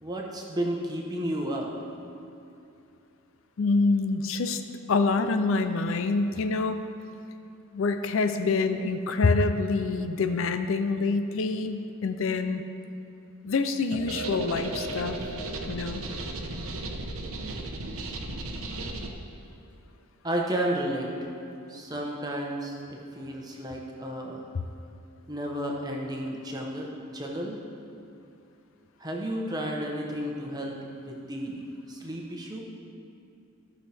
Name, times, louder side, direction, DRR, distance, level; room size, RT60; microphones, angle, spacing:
voice 1, 0.0-1.7 20.2-21.3 21.7-24.4 25.3-27.6 29.0-31.6 31.9-32.6, right 1 dB, 20° right, -1 dB, 1.0 m, -32 dB
voice 2, 3.6-4.6 4.9-6.8 7.7-12.6 13.4-15.2 15.7-16.0, left 3 dB, 65° left, 8 dB, 0.5 m, -26 dB
sound 1, 13.9-19.1, right 2 dB, 80° right, 0.9 m, -35 dB
15.0 x 6.3 x 3.4 m, 2.7 s
head